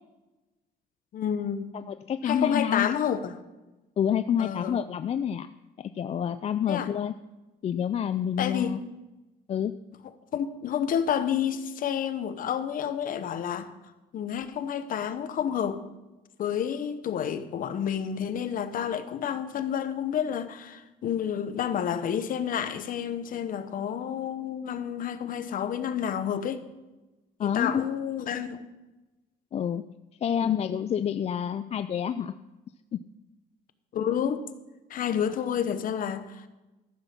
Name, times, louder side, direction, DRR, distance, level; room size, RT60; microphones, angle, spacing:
voice 1, 1.1-1.7 2.2-3.3 4.4-4.8 6.7-6.9 8.4-8.8 10.3-13.7 14.1-15.8 16.4-26.6 27.4-28.6 30.4-30.6 33.9-34.4 34.9-36.5, left 8 dB, 55° left, 1.0 m, -29 dB
voice 2, 1.7-2.9 4.0-5.5 5.8-7.1 7.6-8.8 9.5-9.7 27.4-27.8 29.5-29.8 30.2-32.3 32.9-33.0, left 8 dB, 40° left, 0.4 m, -28 dB
14.0 x 6.8 x 5.9 m
cardioid pair, 110°, 17 cm